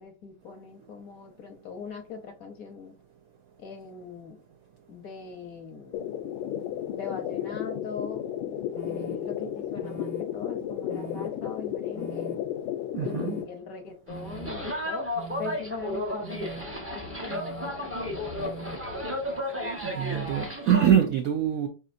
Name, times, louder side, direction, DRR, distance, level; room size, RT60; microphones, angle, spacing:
voice 1, 0.0-2.9 3.6-4.4 4.9-6.1 6.8-8.3 8.8-12.4 13.0-15.1 15.4-18.7, left 5 dB, 60° left, 0.9 m, -41 dB
sound 1, 5.9-13.4, left 10 dB, 80° left, 1.4 m, -33 dB
sound 2, 8.7-9.1 9.8-10.2 10.9-11.3 11.9-12.4 13.0-13.4 14.1-14.5 15.1-15.6 16.2-16.6 17.3-17.7 18.4-18.8, right 8 dB, 60° right, 1.0 m, -42 dB
voice 2, 12.9-13.4 19.8-21.7, right 9 dB, 80° right, 0.7 m, -24 dB
sound 3, 14.1-20.9, left 1 dB, 20° right, 0.3 m, -33 dB
5.0 x 4.1 x 2.5 m
omnidirectional pair, 2.1 m